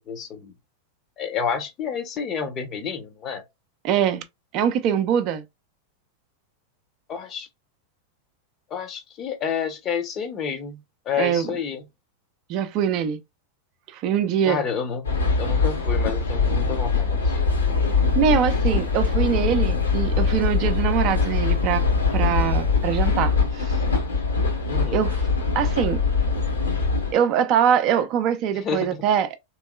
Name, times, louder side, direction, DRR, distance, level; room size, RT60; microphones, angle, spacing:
voice 1, 0.1-0.5 1.2-3.4 7.1-7.5 8.7-11.8 14.5-15.1 15.4-17.3 24.7-25.0 28.6-29.0, left 6 dB, 30° left, 0.8 m, -29 dB
voice 2, 3.8-4.2 4.5-5.4 11.2-11.5 12.5-13.2 13.9-14.6 18.1-21.9 22.1-23.8 24.9-25.3 25.5-26.0 27.1-29.3, right 8 dB, 40° right, 0.5 m, -23 dB
sound 1, 15.0-27.1, left 4 dB, 75° left, 1.7 m, -22 dB
sound 2, 17.5-23.3, equal, 85° right, 0.6 m, -37 dB
3.5 x 3.1 x 2.3 m
figure-of-eight pair, 90°, 0 cm